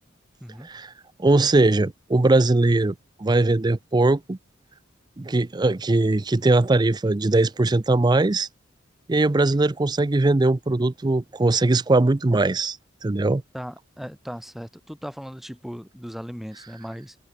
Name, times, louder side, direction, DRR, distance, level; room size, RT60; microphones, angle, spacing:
voice 1, 1.2-2.9 3.2-4.4 5.2-8.5 9.1-12.8 13.0-13.4, right 2 dB, 20° right, 0.5 m, -20 dB
voice 2, 13.5-17.2, equal, ahead, 1.8 m, -37 dB
head